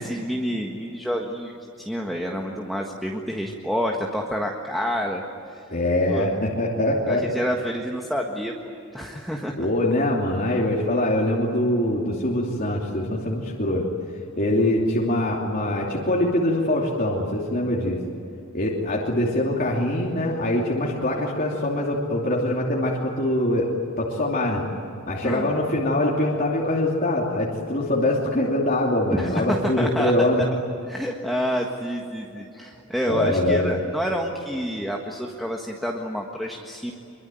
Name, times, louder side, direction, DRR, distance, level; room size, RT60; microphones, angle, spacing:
voice 1, 0.0-1.5 1.8-5.2 6.1-6.3 7.1-8.5 8.9-9.7 25.2-25.5 29.1-30.1 30.9-36.9, equal, ahead, 0 dB, 1.6 m, -28 dB
voice 2, 5.7-7.2 9.6-13.8 14.4-18.0 18.5-23.7 24.0-24.6 25.1-30.4 33.1-33.7, left 1 dB, 40° left, -3 dB, 2.9 m, -23 dB
25.0 x 23.5 x 9.2 m, 2.8 s
head